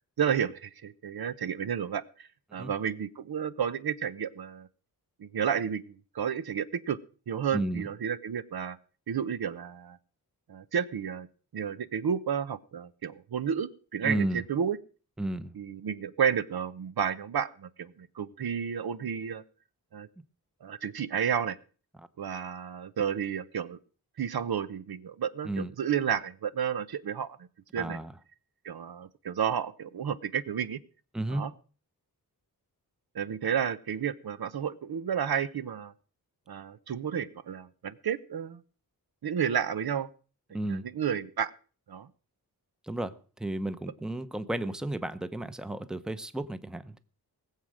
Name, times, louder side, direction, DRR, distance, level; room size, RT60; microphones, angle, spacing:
voice 1, 0.2-4.7 5.2-7.0 7.3-8.8 9.1-10.0 10.5-11.3 11.5-14.8 15.5-19.4 19.9-20.1 20.6-21.6 22.2-23.8 24.2-27.5 27.7-28.0 28.6-30.8 31.3-31.5 33.1-35.9 36.5-38.6 39.2-40.1 40.7-41.5 41.9-42.1, right 8 dB, 70° right, 0.9 m, -31 dB
voice 2, 7.5-7.9 14.0-14.4 15.2-15.5 25.4-25.7 27.8-28.1 31.1-31.4 40.5-40.8 42.8-47.0, right 1 dB, ahead, 0.8 m, -33 dB
19.5 x 7.6 x 6.4 m
wide cardioid pair, 140°, 38 cm